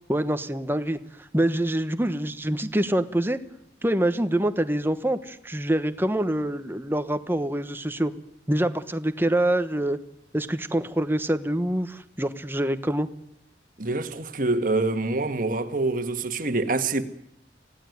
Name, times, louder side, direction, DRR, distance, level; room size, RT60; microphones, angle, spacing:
voice 1, 0.1-1.0 1.3-3.4 3.8-8.1 8.5-10.0 10.3-13.1, right 1 dB, 10° right, 1.1 m, -25 dB
voice 2, 13.8-17.0, right 2 dB, 50° right, 1.7 m, -26 dB
25.5 x 17.5 x 9.4 m
head